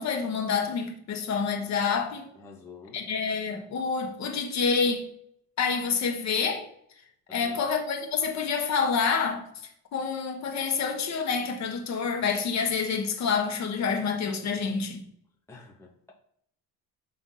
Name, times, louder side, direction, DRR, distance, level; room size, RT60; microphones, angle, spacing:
voice 1, 0.0-2.3 2.9-5.0 5.6-6.6 7.3-9.4 9.9-15.0, left 5 dB, 50° left, 1.3 m, -27 dB
voice 2, 2.3-3.0 7.3-7.7 15.5-16.1, left 4 dB, 5° left, 0.8 m, -49 dB
7.7 x 3.5 x 5.5 m
cardioid pair, 160°, 36 cm